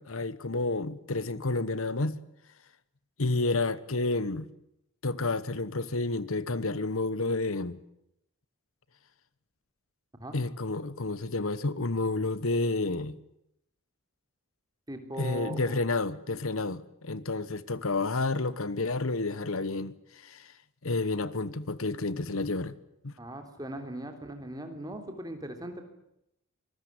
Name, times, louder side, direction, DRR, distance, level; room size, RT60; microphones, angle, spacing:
voice 1, 0.0-2.2 3.2-4.5 5.0-7.8 10.3-13.1 15.2-20.5 20.8-22.7 23.0-23.2, left 3 dB, 70° left, 1.1 m, -30 dB
voice 2, 14.9-15.8 23.2-25.8, right 1 dB, 15° right, 3.4 m, -39 dB
25.5 x 20.0 x 9.6 m
head